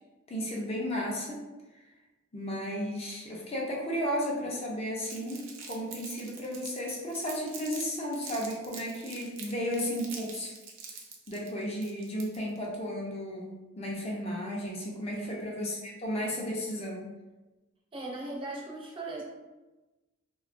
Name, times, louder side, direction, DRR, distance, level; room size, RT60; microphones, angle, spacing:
voice 1, 0.3-1.4 2.3-10.5 11.3-17.1, equal, 30° left, -3 dB, 0.4 m, -34 dB
Crumpling crinkling, 5.0-7.8 8.1-12.6, right 5 dB, 80° right, 0.5 m, -45 dB
voice 2, 17.9-19.2, right 2 dB, 25° right, -4 dB, 0.5 m, -38 dB
2.6 x 2.2 x 2.4 m, 1.1 s
head